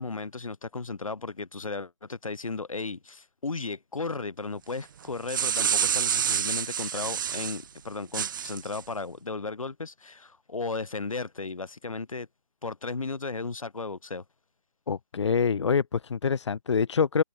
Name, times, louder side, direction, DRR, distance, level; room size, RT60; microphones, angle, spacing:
voice 1, 0.0-12.3 12.6-14.2, left 3 dB, 80° left, 2.4 m, -35 dB
sound 1, 5.0-7.6 8.1-8.8, right 8 dB, 40° right, 1.2 m, -28 dB
voice 2, 14.9-17.2, left 6 dB, 60° left, 0.8 m, -25 dB
figure-of-eight pair, 155°, 17 cm